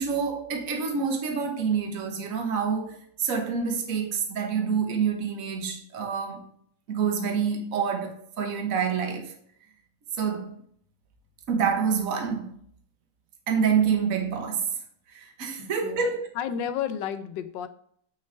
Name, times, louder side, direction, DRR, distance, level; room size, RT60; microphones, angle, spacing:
voice 1, 0.0-6.4 6.9-9.3 10.2-10.6 11.5-12.5 13.5-14.7 15.1-16.2, right 6 dB, 50° right, 1.4 m, -27 dB
voice 2, 15.6-16.0 16.3-17.7, left 9 dB, 80° left, 1.3 m, -32 dB
7.8 x 5.6 x 3.4 m
omnidirectional pair, 2.0 m